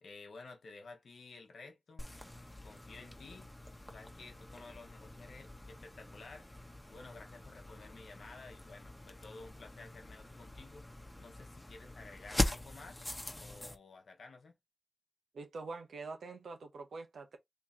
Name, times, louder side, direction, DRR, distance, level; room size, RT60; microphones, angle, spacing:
voice 1, 0.0-2.1 2.6-3.5 3.9-6.5 6.9-10.9 11.2-13.0 13.4-14.6, left 3 dB, 85° left, 1.0 m, -53 dB
sound 1, 2.0-13.8, left 1 dB, 20° left, 1.0 m, -42 dB
voice 2, 15.3-17.4, right 3 dB, 90° right, 0.9 m, -45 dB
3.1 x 2.8 x 3.7 m
cardioid pair, 50°, 0 cm